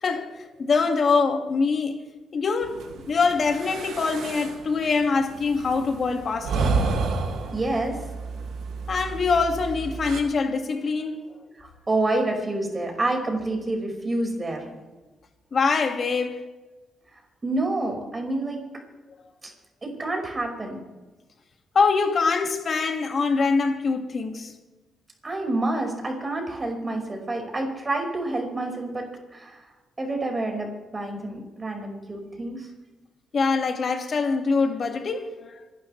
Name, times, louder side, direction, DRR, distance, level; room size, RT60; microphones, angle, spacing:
voice 1, 0.0-2.0 2.3-6.7 8.9-11.3 15.5-16.4 21.7-24.5 33.3-35.6, left 4 dB, 50° left, 2.1 m, -24 dB
sound 1, 2.6-10.2, right 4 dB, 80° right, 2.3 m, -31 dB
voice 2, 7.5-8.0 11.6-14.6 17.4-18.6 19.4-19.5 19.8-20.8 25.2-29.0 29.3-29.6 30.0-32.7, right 2 dB, 30° right, 5.3 m, -28 dB
27.0 x 12.0 x 3.3 m
cardioid pair, 75°, 0 cm